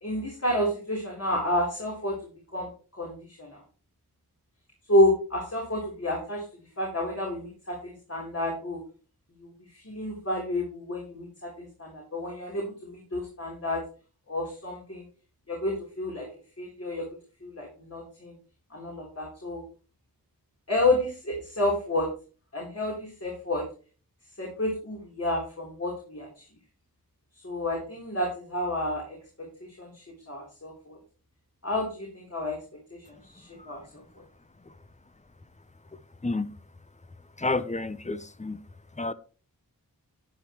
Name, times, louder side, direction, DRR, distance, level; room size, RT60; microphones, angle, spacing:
voice 1, 0.0-2.1 2.5-3.6 4.9-6.4 6.8-8.8 9.4-9.5 9.7-13.8 14.3-15.0 15.5-16.3 16.6-17.1 17.4-18.3 18.7-19.6 20.7-22.1 22.5-23.7 24.4-26.5 27.4-29.5 29.8-31.0 31.6-32.6 33.1-34.0, left 1 dB, 40° left, 3.8 m, -30 dB
voice 2, 36.2-36.5 37.4-38.6 39.0-39.1, left 2 dB, 20° left, 0.7 m, -30 dB
11.5 x 9.3 x 3.1 m
wide cardioid pair, 55°, 36 cm